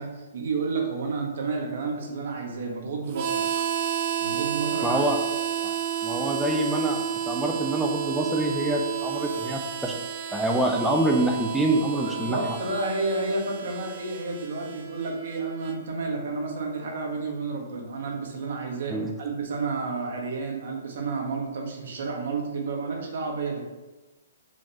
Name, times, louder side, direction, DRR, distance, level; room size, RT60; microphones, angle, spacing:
voice 1, 0.0-3.4 4.2-5.0 12.0-23.6, right 3 dB, 65° right, 0 dB, 1.5 m, -31 dB
Harmonica, 3.1-15.8, right 9 dB, 45° right, 0.7 m, -31 dB
voice 2, 4.8-5.2 5.6-5.7 6.0-9.9 10.3-12.6 18.9-19.1, right 1 dB, ahead, -1 dB, 0.5 m, -26 dB
5.1 x 3.6 x 5.5 m, 1.1 s
hypercardioid pair, 140°, 0 cm